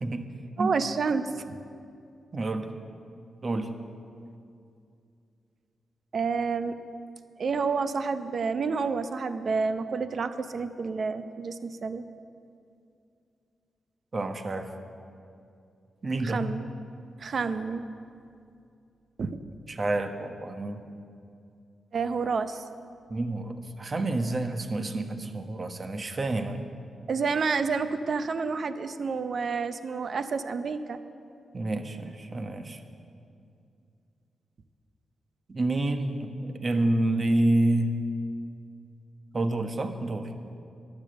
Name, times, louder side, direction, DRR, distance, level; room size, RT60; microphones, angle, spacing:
voice 1, 0.6-1.6 6.1-6.8 7.4-12.1 16.2-16.7 17.2-17.9 19.2-19.4 21.9-22.6 27.1-31.0, right 5 dB, 60° right, 10 dB, 0.7 m, -29 dB
voice 2, 2.3-2.7 3.4-3.8 14.1-14.7 16.0-16.4 19.7-20.8 23.1-26.6 31.5-32.8 35.5-37.9 39.3-40.3, right 2 dB, 40° right, 6 dB, 1.2 m, -28 dB
12.0 x 10.5 x 7.8 m, 2.5 s
cardioid pair, 65°, 0 cm